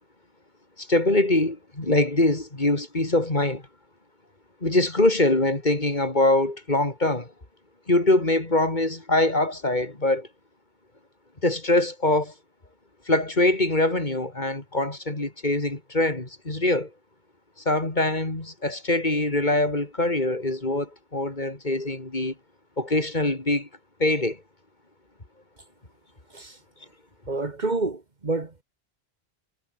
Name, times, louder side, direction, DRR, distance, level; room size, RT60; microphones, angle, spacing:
voice 1, 0.8-3.6 4.6-7.3 7.9-10.3 11.4-12.3 13.1-16.9 17.7-22.3 22.8-23.7 24.0-24.4, left 2 dB, 45° left, 3.5 m, -23 dB
voice 2, 27.3-28.6, right 3 dB, 45° right, 1.8 m, -28 dB
omnidirectional pair, 1.0 m